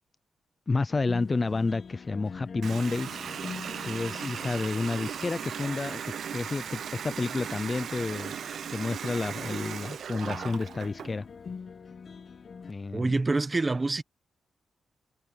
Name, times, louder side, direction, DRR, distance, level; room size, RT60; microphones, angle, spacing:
voice 1, 0.7-3.2 3.8-8.4 8.7-11.3 12.7-13.1, left 3 dB, 25° left, 0.5 m, -30 dB
sound 1, 0.9-12.7, left 5 dB, 40° left, 1.5 m, -46 dB
Water tap faucet, 2.6-11.1, right 8 dB, 60° right, 0.7 m, -37 dB
voice 2, 12.9-14.0, right 3 dB, 20° right, 1.1 m, -26 dB
wide cardioid pair, 165°, 0 cm